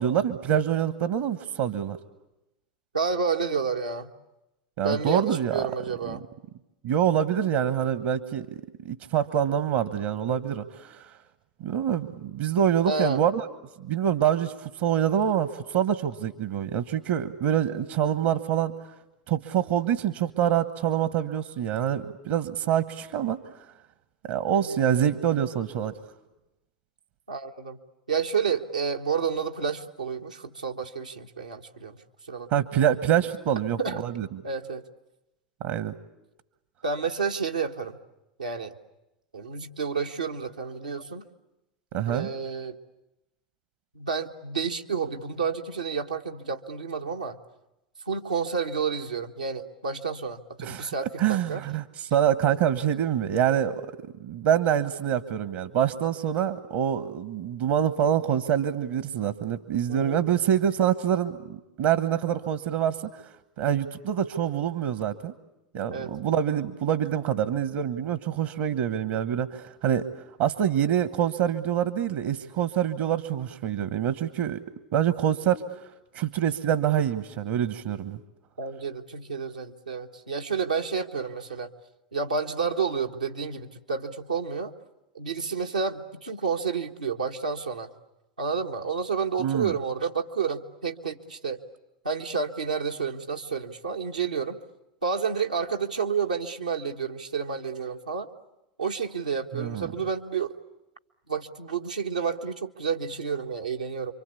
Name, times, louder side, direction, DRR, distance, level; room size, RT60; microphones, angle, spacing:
voice 1, 0.0-2.0 4.8-5.7 6.0-6.2 6.8-11.0 11.6-13.4 13.8-18.7 19.3-23.4 24.3-25.9 32.5-34.4 35.6-35.9 41.9-42.3 50.6-50.9 51.2-53.8 54.2-63.2 63.6-65.3 65.7-70.1 70.4-74.6 74.9-75.6 76.1-78.2 89.4-89.7 99.5-99.9, right 9 dB, 60° right, 13 dB, 1.2 m, -26 dB
voice 2, 2.9-4.1 4.8-6.2 12.8-13.2 24.5-24.9 27.3-27.8 28.1-32.0 32.3-32.5 33.8-34.0 34.4-34.8 36.8-38.0 38.4-38.7 39.3-41.2 42.1-42.8 43.9-47.4 48.0-51.6 59.9-60.2 65.9-66.1 78.6-81.7 82.1-84.7 85.1-87.9 88.4-91.6 92.0-94.6 95.0-98.3 98.8-100.6 101.3-104.1, right 5 dB, 90° right, 2 dB, 1.5 m, -30 dB
27.5 x 24.5 x 8.5 m, 0.95 s
figure-of-eight pair, 85°, 4 cm